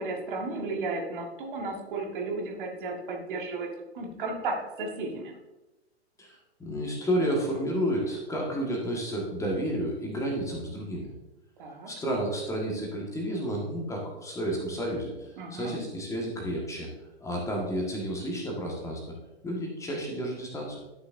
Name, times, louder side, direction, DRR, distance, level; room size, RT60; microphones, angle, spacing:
voice 1, 0.0-3.7 3.9-5.3 11.6-11.9 15.4-15.8, right 3 dB, 50° right, 1 dB, 1.7 m, -34 dB
voice 2, 6.2-11.1 11.9-16.9 17.2-19.1 19.4-20.8, equal, 10° left, -1 dB, 1.6 m, -31 dB
11.5 x 6.6 x 2.6 m, 1.0 s
figure-of-eight pair, 105°, 33 cm